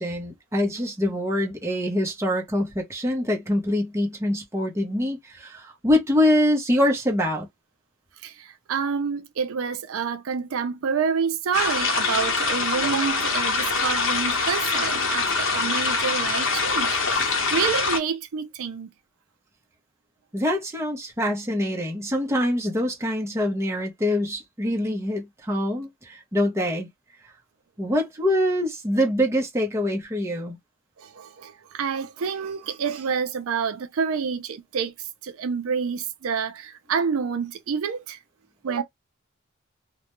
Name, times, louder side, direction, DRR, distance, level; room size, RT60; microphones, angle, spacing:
voice 1, 0.0-7.5 20.3-26.9 27.8-30.6, left 1 dB, 10° right, 0.6 m, -24 dB
voice 2, 8.2-18.9 31.0-34.9 35.2-38.2 38.6-38.8, right 6 dB, 70° right, 0.4 m, -28 dB
sound 1, 11.5-18.0, left 4 dB, 55° left, 0.8 m, -24 dB
2.2 x 2.1 x 2.9 m
head